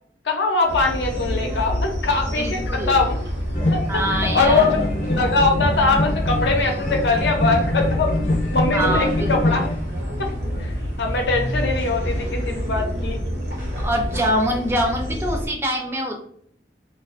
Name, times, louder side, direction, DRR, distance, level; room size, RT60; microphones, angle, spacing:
voice 1, 0.2-3.2 3.7-3.8 4.1-8.1 8.5-9.7 10.2-10.3 10.6-13.3, left 3 dB, 85° left, 3 dB, 0.6 m, -22 dB
sound 1, 0.7-15.5, equal, 80° right, 0.8 m, -27 dB
voice 2, 2.4-2.9 3.9-4.6 8.7-9.6 13.8-16.1, equal, 15° right, 2 dB, 0.3 m, -24 dB
sound 2, 3.5-9.8, left 2 dB, 40° left, 0.5 m, -25 dB
2.4 x 2.3 x 2.4 m, 0.62 s
head